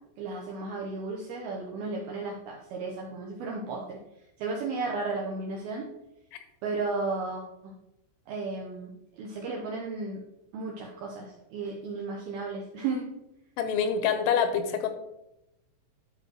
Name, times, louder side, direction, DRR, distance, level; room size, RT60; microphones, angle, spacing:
voice 1, 0.2-4.0 4.4-5.9 6.6-7.7 8.3-10.2 10.5-13.1, right 3 dB, 80° right, -2 dB, 2.2 m, -34 dB
voice 2, 13.6-14.9, left 7 dB, 85° left, 8 dB, 3.3 m, -26 dB
12.5 x 5.2 x 3.0 m, 0.86 s
omnidirectional pair, 5.7 m